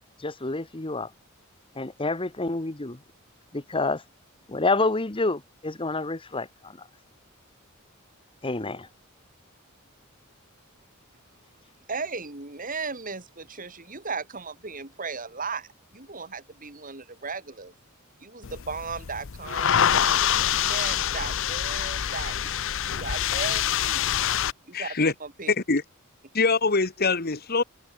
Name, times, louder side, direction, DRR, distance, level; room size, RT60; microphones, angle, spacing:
voice 1, 0.2-1.1 1.7-3.0 3.5-4.0 4.5-6.9 8.4-8.9, left 3 dB, 25° left, 1.2 m, -28 dB
voice 2, 11.9-17.7 18.2-20.2 20.5-24.0 24.7-25.5, right 4 dB, 40° right, 2.9 m, -36 dB
sound 1, 18.4-24.5, left 9 dB, 60° left, 0.6 m, -25 dB
voice 3, 24.7-25.1 25.5-25.8 26.3-27.6, left 4 dB, 45° left, 1.5 m, -23 dB
head